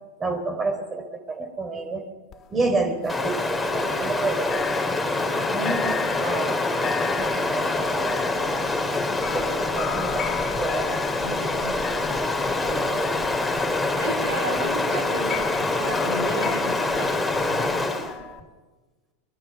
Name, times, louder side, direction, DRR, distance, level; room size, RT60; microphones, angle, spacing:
voice 1, 0.2-2.0 2.5-5.0 5.5-8.6 9.3-10.9 11.3-12.0 12.7-13.1 18.2-18.3, right 3 dB, 20° right, 7 dB, 3.9 m, -30 dB
sound 1, 2.3-4.2 4.5-18.4, left 8 dB, 30° left, 3.6 m, -37 dB
Stream, 3.1-18.2, left 2 dB, 5° left, 3.8 m, -25 dB
voice 2, 11.2-11.9 14.0-17.7, right 3 dB, 75° right, 7 dB, 2.9 m, -34 dB
25.5 x 22.0 x 6.0 m, 1.2 s
figure-of-eight pair, 85°, 0 cm